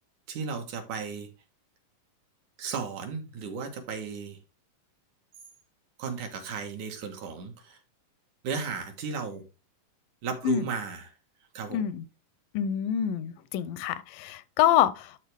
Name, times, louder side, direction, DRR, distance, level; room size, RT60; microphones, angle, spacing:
voice 1, 0.3-1.3 2.6-4.4 6.0-7.8 8.4-9.5 10.2-11.1 11.5-11.8, right 5 dB, 65° right, 2.7 m, -35 dB
voice 2, 11.7-12.1 12.5-15.2, left 10 dB, 85° left, 2.3 m, -26 dB
12.0 x 4.1 x 3.4 m
omnidirectional pair, 3.8 m